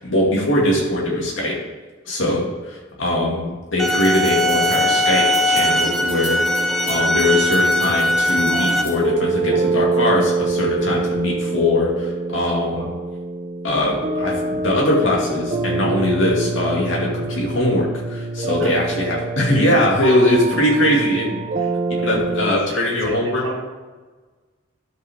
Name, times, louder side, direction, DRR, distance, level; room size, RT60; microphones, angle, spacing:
voice 1, 0.0-1.6 2.1-12.9 13.6-21.4 22.0-23.4, left 1 dB, 75° left, -3 dB, 2.4 m, -21 dB
sound 1, 3.8-4.8 5.3-7.2 7.5-9.0, left 2 dB, 30° left, 2.7 m, -36 dB
sound 2, 3.8-8.8, left 1 dB, ahead, 0.5 m, -20 dB
sound 3, 5.8-22.5, right 3 dB, 40° right, 0.7 m, -26 dB
voice 2, 12.7-13.0 18.6-18.7 20.2-21.0 21.6-21.8 22.1-23.6, equal, 85° right, 0 dB, 1.6 m, -34 dB
11.5 x 5.6 x 3.7 m, 1.3 s
head